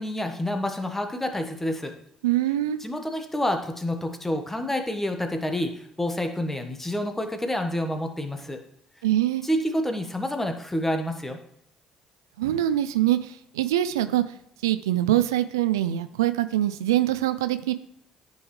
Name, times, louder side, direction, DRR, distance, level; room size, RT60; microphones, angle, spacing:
voice 1, 0.0-1.9 2.8-8.6 9.4-11.4, left 1 dB, 15° left, 5 dB, 1.3 m, -28 dB
voice 2, 2.2-2.8 9.0-9.4 12.4-13.2 13.6-14.2 14.6-17.7, right 13 dB, 90° right, 12 dB, 0.3 m, -23 dB
9.9 x 5.4 x 3.2 m, 0.71 s
hypercardioid pair, 55°, 2 cm